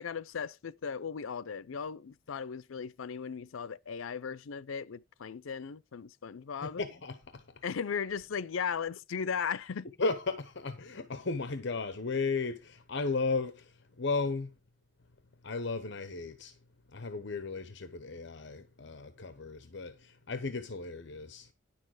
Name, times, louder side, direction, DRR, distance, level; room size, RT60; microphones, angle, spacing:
voice 1, 0.0-6.8 7.6-9.9, left 6 dB, 85° left, 0.5 m, -37 dB
voice 2, 6.6-7.4 10.0-14.5 15.4-16.6 16.9-21.5, left 4 dB, 60° left, 0.9 m, -35 dB
10.0 x 6.7 x 4.8 m
head